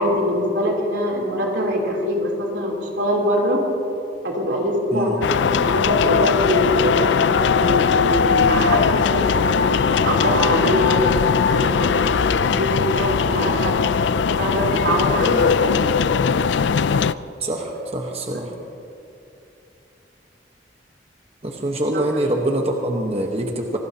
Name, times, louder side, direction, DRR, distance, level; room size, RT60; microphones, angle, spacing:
voice 1, 0.0-3.7 4.2-12.3 12.6-13.9 14.4-15.8 18.3-18.4 21.9-22.1, equal, 85° right, -2 dB, 3.4 m, -23 dB
sound 1, 5.2-17.1, left 6 dB, 80° left, 0.4 m, -19 dB
voice 2, 17.4-18.5 21.4-23.8, right 1 dB, 35° right, 1 dB, 1.2 m, -24 dB
26.5 x 18.5 x 2.9 m, 2.7 s
head